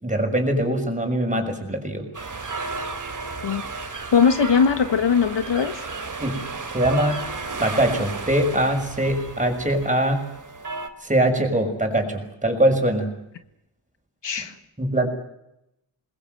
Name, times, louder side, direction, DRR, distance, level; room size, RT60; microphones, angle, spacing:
voice 1, 0.0-2.0 6.2-6.4 6.7-7.2 7.6-10.3 11.0-13.1 14.8-15.1, right 1 dB, 15° right, 4 dB, 6.3 m, -22 dB
sound 1, 2.1-10.9, right 3 dB, 40° right, 3.0 m, -33 dB
voice 2, 4.1-5.9 14.2-14.5, left 6 dB, 60° left, 10 dB, 1.6 m, -20 dB
27.5 x 21.0 x 7.9 m, 0.84 s
wide cardioid pair, 100°, 49 cm